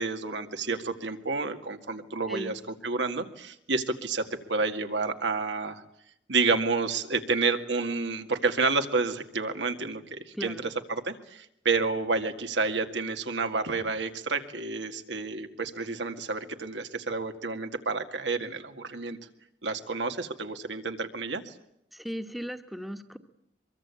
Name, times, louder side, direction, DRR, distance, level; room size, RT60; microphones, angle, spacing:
voice 1, 0.0-5.8 6.3-19.2 19.6-21.5, right 4 dB, 90° right, 6 dB, 2.1 m, -30 dB
voice 2, 21.9-23.2, equal, ahead, 7 dB, 1.2 m, -37 dB
24.0 x 23.0 x 8.5 m, 0.78 s
head